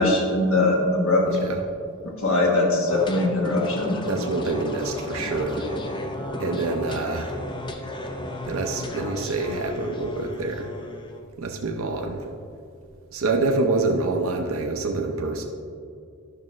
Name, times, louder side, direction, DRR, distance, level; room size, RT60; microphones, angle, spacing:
voice 1, 0.0-1.2 2.0-4.0, left 2 dB, 65° left, -1 dB, 1.3 m, -21 dB
sound 1, 2.9-11.2, left 1 dB, 20° left, 0.6 m, -33 dB
voice 2, 4.1-5.6 6.4-7.3 8.5-10.7 11.4-12.2 13.1-15.4, right 3 dB, 65° right, 2 dB, 0.6 m, -26 dB
11.0 x 6.1 x 3.2 m, 2.4 s
head